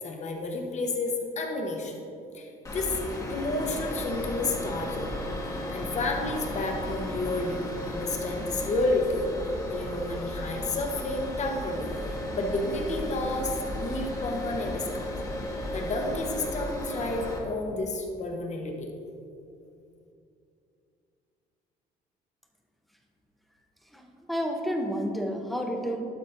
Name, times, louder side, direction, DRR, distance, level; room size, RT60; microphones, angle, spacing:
voice 1, 0.0-2.0 2.3-3.0 3.3-9.3 9.7-11.9 12.3-15.2 15.7-18.9, left 2 dB, 45° left, 2 dB, 1.2 m, -31 dB
sound 1, 2.6-17.4, left 1 dB, 20° left, 1.3 m, -34 dB
voice 2, 23.8-26.0, equal, ahead, 2 dB, 0.8 m, -31 dB
12.0 x 4.1 x 3.9 m, 2.6 s
cardioid pair, 110°, 17 cm